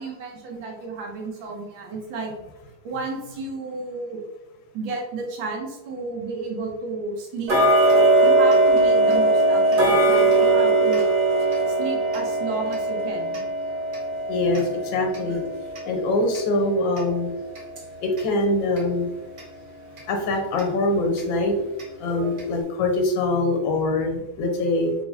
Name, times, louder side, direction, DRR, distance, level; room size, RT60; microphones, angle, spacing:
voice 1, 0.0-2.3 2.8-4.2 4.7-7.6 8.2-11.0 11.7-13.4 22.1-22.3, right 3 dB, 75° right, 0 dB, 1.5 m, -32 dB
Tick-tock, 7.5-18.3 18.7-18.8 19.4-19.5 20.0-20.1 20.6-20.7 21.2-21.3 21.8-21.9 22.4-22.5, right 2 dB, 60° right, 0.5 m, -21 dB
voice 2, 14.3-15.4 15.8-17.3 18.0-19.1 20.1-21.5 22.0-24.9, left 2 dB, 80° left, 3 dB, 1.4 m, -23 dB
3.5 x 3.2 x 2.6 m, 0.98 s
omnidirectional pair, 2.1 m